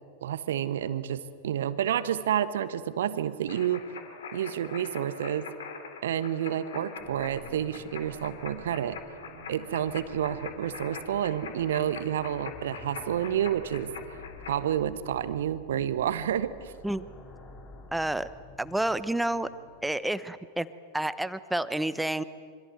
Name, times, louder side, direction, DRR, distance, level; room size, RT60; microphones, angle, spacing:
voice 1, 0.2-3.8 4.3-5.5 6.0-9.0 9.5-13.9 14.4-16.7, right 10 dB, 60° right, 13 dB, 1.3 m, -29 dB
sound 1, 3.5-14.5, left 6 dB, 60° left, 3.5 m, -43 dB
sound 2, 7.0-20.0, left 2 dB, 30° left, 5.8 m, -50 dB
voice 2, 17.9-18.3 18.6-19.5 19.8-20.7 20.9-22.2, right 1 dB, 5° right, 14 dB, 1.0 m, -29 dB
26.5 x 25.0 x 7.9 m, 2.1 s
figure-of-eight pair, 90°, 0 cm